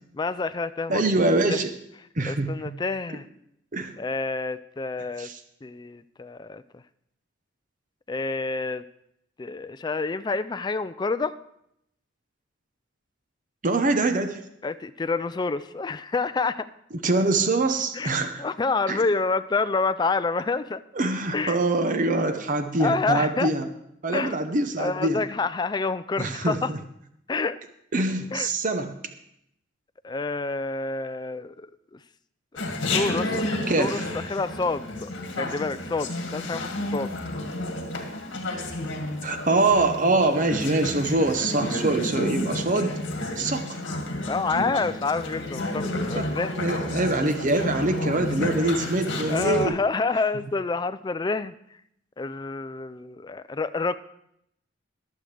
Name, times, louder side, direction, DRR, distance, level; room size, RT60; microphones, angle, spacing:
voice 1, 0.1-1.0 1.5-1.6 2.2-3.2 4.0-5.3 5.6-6.6 8.1-8.8 9.4-11.4 14.6-16.7 17.9-20.8 21.3-21.6 22.8-23.5 24.1-24.4 24.8-26.7 27.3-27.6 28.3-28.5 30.0-31.7 32.6-32.7 32.9-33.4 33.8-34.0 34.3-35.1 35.4-37.2 44.3-46.5 49.3-51.5 52.2-54.0, left 3 dB, 20° left, 13 dB, 0.3 m, -28 dB
voice 2, 0.9-1.7 2.2-2.5 3.7-3.9 5.2-5.4 13.6-14.4 17.0-18.5 18.9-19.0 20.9-23.7 24.0-25.2 26.2-26.8 27.9-28.9 33.7-34.1 39.2-43.0 43.4-43.8 46.1-46.3 46.6-49.7, right 2 dB, 40° right, 7 dB, 0.8 m, -24 dB
Chatter, 32.6-49.7, left 1 dB, 65° left, 1.9 m, -31 dB
22.5 x 7.7 x 3.3 m, 0.76 s
head